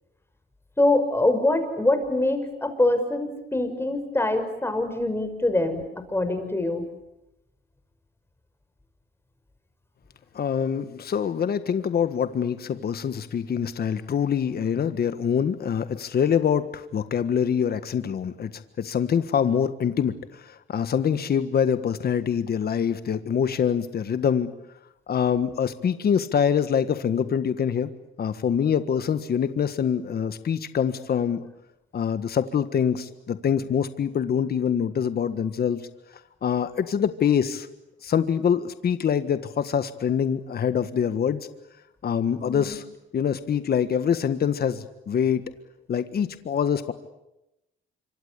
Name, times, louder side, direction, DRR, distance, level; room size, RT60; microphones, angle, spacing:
voice 1, 0.8-6.8 42.4-42.8, left 2 dB, 10° left, 8 dB, 5.8 m, -24 dB
voice 2, 10.3-24.5 25.1-27.9 28.2-31.5 31.9-35.9 36.4-37.7 38.0-41.5 42.0-42.8 43.1-45.5 45.9-46.9, left 8 dB, 50° left, 11 dB, 1.6 m, -25 dB
26.5 x 25.5 x 8.4 m, 0.90 s
cardioid pair, 90°, 20 cm